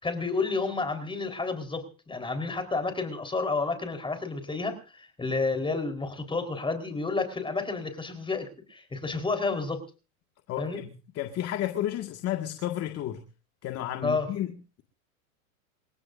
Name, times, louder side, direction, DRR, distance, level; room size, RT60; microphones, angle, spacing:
voice 1, 0.0-9.8 10.6-10.8 14.0-14.3, left 3 dB, 10° left, 4.4 m, -30 dB
voice 2, 10.5-13.2 13.6-14.8, left 12 dB, 35° left, 2.0 m, -32 dB
28.0 x 16.5 x 2.7 m
hypercardioid pair, 115°, 44 cm